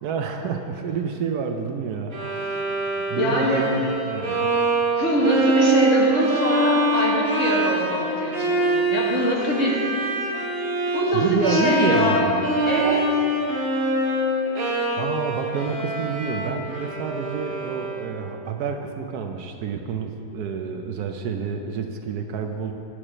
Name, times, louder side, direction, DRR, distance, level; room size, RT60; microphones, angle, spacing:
voice 1, 0.0-2.6 3.1-4.5 11.1-12.6 15.0-22.7, right 6 dB, 70° right, 5 dB, 1.1 m, -28 dB
Bowed string instrument, 2.1-18.2, right 1 dB, 45° right, 1.1 m, -24 dB
voice 2, 3.1-3.6 5.0-10.2 10.9-12.3 12.7-13.0, equal, 50° left, -3 dB, 1.6 m, -23 dB
9.9 x 4.9 x 7.2 m, 2.8 s
omnidirectional pair, 1.8 m